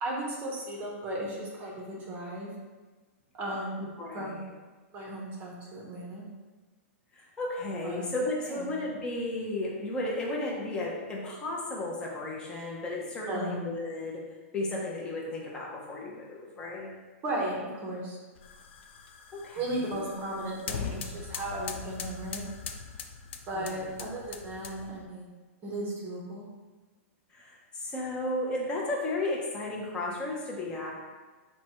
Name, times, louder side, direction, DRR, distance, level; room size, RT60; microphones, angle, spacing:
voice 1, 0.0-2.5 3.4-3.8 4.1-4.5 4.9-6.2 7.8-8.1 8.5-8.7 13.3-13.6 17.2-18.2 19.5-22.4 23.5-25.3 25.6-26.5, right 1 dB, 20° right, -3 dB, 0.8 m, -35 dB
voice 2, 3.8-4.4 7.1-14.2 14.5-16.9 19.3-20.0 23.5-23.8 27.3-30.9, left 2 dB, 10° left, -4 dB, 0.6 m, -34 dB
sound 1, 18.3-25.0, left 6 dB, 55° left, 0.4 m, -41 dB
4.5 x 2.2 x 4.4 m, 1.3 s
hypercardioid pair, 165°, 8 cm